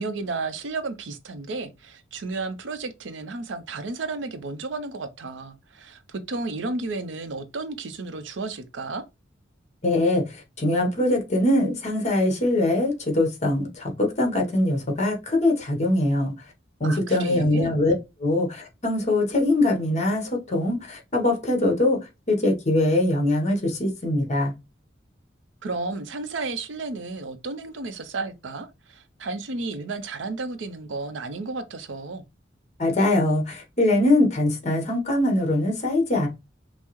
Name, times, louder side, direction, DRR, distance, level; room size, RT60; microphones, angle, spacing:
voice 1, 0.0-9.0 16.8-17.7 25.6-32.2, right 3 dB, 85° right, 0.6 m, -33 dB
voice 2, 9.8-16.3 16.8-17.9 18.2-22.0 22.3-24.5 32.8-36.3, left 1 dB, 40° left, 1.1 m, -22 dB
5.4 x 2.0 x 3.0 m
head